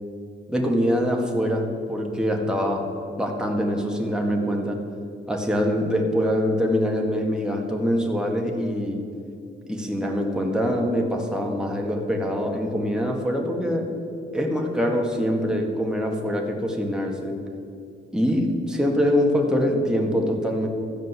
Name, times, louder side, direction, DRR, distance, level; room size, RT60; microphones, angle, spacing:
voice 1, 0.5-2.9 3.2-4.8 5.3-9.1 9.7-13.9 14.3-17.4 18.1-20.7, equal, 5° right, 0 dB, 1.8 m, -24 dB
13.5 x 5.2 x 8.2 m, 2.5 s
cardioid pair, 90°, 20 cm